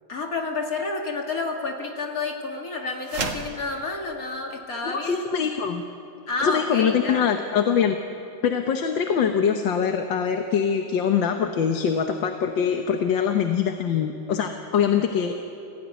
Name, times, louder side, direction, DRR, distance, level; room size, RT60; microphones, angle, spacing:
voice 1, 0.1-5.3 6.3-7.3, left 3 dB, 50° left, 2 dB, 2.7 m, -30 dB
sound 1, 3.0-3.6, right 4 dB, 75° right, 2.4 m, -30 dB
voice 2, 4.8-5.8 6.4-8.0 8.4-15.3, left 7 dB, 80° left, 5 dB, 1.9 m, -23 dB
28.0 x 17.5 x 9.4 m, 3.0 s
omnidirectional pair, 2.0 m